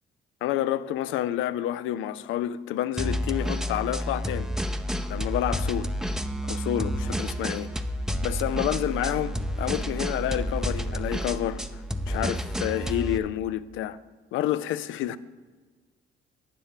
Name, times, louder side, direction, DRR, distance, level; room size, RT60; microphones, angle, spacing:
voice 1, 0.4-4.5 5.1-5.9 6.4-7.7 8.2-11.6 12.1-14.0 14.3-15.2, left 12 dB, 85° left, 0.5 m, -29 dB
sound 1, 3.0-13.2, equal, 5° right, 0.6 m, -30 dB
9.0 x 7.5 x 6.6 m
cardioid pair, 90°, 20 cm